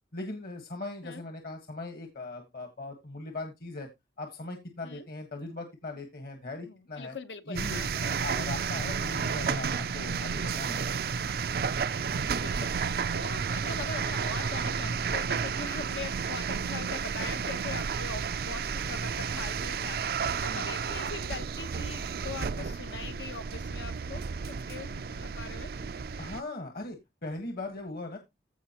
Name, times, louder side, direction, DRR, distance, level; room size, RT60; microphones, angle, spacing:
voice 1, 0.1-3.9 4.2-7.1 7.5-11.0 20.4-20.6 26.2-28.2, left 2 dB, 55° left, 1.5 m, -39 dB
voice 2, 6.6-7.9 12.0-25.7, left 4 dB, 85° left, 1.1 m, -42 dB
sound 1, 7.5-26.4, right 6 dB, 55° right, 0.4 m, -32 dB
15.5 x 5.1 x 2.9 m
head